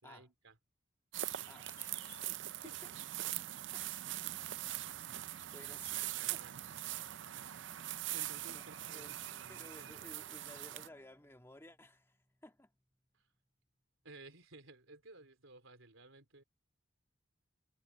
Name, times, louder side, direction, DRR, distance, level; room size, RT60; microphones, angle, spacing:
voice 1, 0.0-0.5 2.3-3.0 5.9-6.8 8.1-10.1 13.1-13.3 14.0-16.4, right 3 dB, 85° right, 3.7 m, -57 dB
sound 1, 1.1-10.9, right 13 dB, 65° right, 0.5 m, -42 dB
voice 2, 1.5-2.2 3.2-3.3 3.7-4.2 5.5-6.0 6.3-6.4 8.5-8.6 8.9-12.7, left 1 dB, 10° left, 2.1 m, -56 dB
Bowed string instrument, 7.3-12.8, equal, 5° right, 4.4 m, -70 dB
head